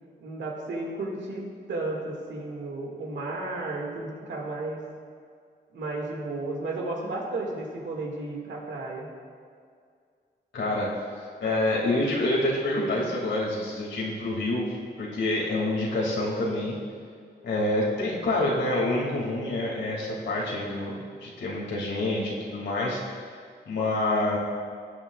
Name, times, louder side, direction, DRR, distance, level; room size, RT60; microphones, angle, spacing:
voice 1, 0.2-4.8 5.7-9.1, right 2 dB, 85° right, -1 dB, 2.1 m, -33 dB
voice 2, 10.5-10.9 11.4-14.7 15.0-16.8 17.4-20.9 21.2-23.0 23.7-24.4, left 2 dB, 85° left, -4 dB, 2.6 m, -27 dB
17.5 x 9.0 x 2.4 m, 2.2 s
cardioid pair, 90°, 19 cm